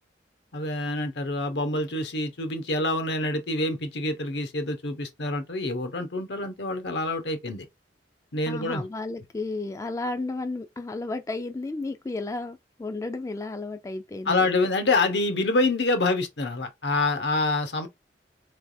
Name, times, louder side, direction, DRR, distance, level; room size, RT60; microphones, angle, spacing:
voice 1, 0.5-7.7 8.3-8.8 14.3-17.9, left 2 dB, 80° left, 1.0 m, -26 dB
voice 2, 8.5-14.5, left 2 dB, 20° left, 0.3 m, -33 dB
4.0 x 3.3 x 2.6 m
head